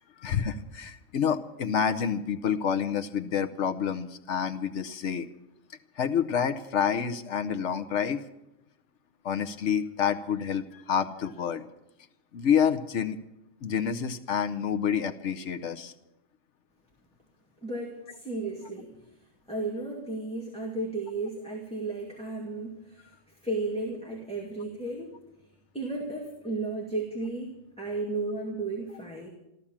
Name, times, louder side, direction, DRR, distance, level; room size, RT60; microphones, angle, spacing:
voice 1, 0.2-5.3 6.0-8.2 9.2-11.6 12.3-13.2 13.6-15.9, left 7 dB, 70° left, 9 dB, 1.1 m, -28 dB
voice 2, 17.6-18.9 19.5-23.1 23.4-25.1 25.7-29.3, right 2 dB, 5° left, -3 dB, 2.3 m, -34 dB
14.5 x 14.0 x 7.3 m, 0.89 s
omnidirectional pair, 1.3 m